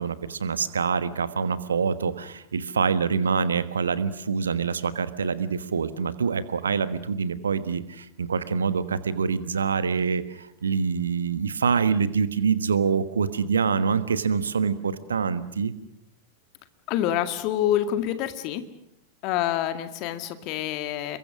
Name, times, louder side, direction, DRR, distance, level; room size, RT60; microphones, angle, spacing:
voice 1, 0.0-15.7, right 6 dB, 70° right, 13 dB, 1.3 m, -25 dB
voice 2, 16.9-18.6 19.2-21.2, left 11 dB, 40° left, 9 dB, 2.0 m, -27 dB
28.5 x 23.0 x 6.3 m, 0.79 s
figure-of-eight pair, 90°, 0 cm